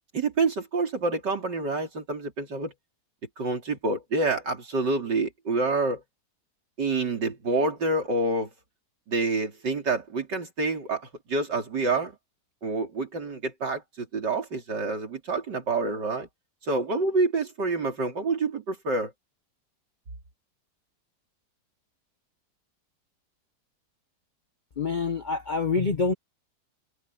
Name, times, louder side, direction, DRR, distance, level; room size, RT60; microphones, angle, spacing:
voice 1, 0.1-2.7 3.4-6.0 6.8-8.5 9.1-12.1 12.6-16.3 16.6-19.1, right 3 dB, 85° right, 4.2 m, -27 dB
voice 2, 24.8-26.1, left 4 dB, 35° left, 0.8 m, -26 dB
omnidirectional pair, 1.8 m